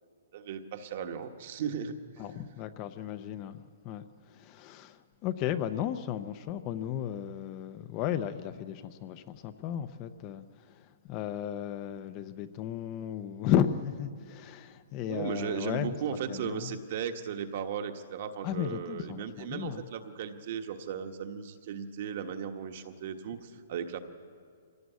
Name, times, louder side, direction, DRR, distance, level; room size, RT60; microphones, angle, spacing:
voice 1, 0.3-2.2 5.7-5.8 15.1-24.0, right 7 dB, 35° right, 7 dB, 1.3 m, -36 dB
voice 2, 2.2-4.0 4.3-10.4 11.1-15.9 16.3-16.7 18.4-19.8, left 10 dB, 20° left, 10 dB, 0.6 m, -34 dB
25.0 x 17.5 x 8.2 m, 2.1 s
hypercardioid pair, 180°, 0 cm